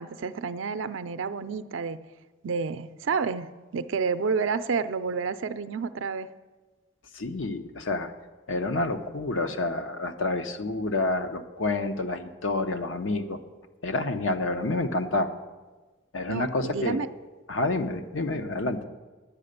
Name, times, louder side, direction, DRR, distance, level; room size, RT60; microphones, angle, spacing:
voice 1, 0.0-2.0 2.4-3.5 3.7-6.3 16.3-17.1, right 5 dB, 80° right, 12 dB, 0.4 m, -29 dB
voice 2, 7.1-8.1 8.5-13.4 13.8-15.3 16.1-17.0 17.5-18.9, left 2 dB, 90° left, 8 dB, 0.9 m, -28 dB
10.5 x 8.6 x 6.6 m, 1.2 s
head